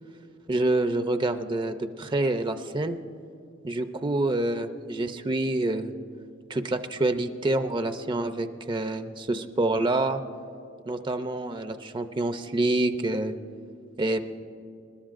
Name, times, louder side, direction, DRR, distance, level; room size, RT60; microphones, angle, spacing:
voice 1, 0.5-3.0 3.6-5.9 6.5-10.2 10.8-13.3 14.0-14.2, right 2 dB, 25° right, 8 dB, 0.5 m, -27 dB
28.0 x 12.5 x 2.5 m, 2.5 s
head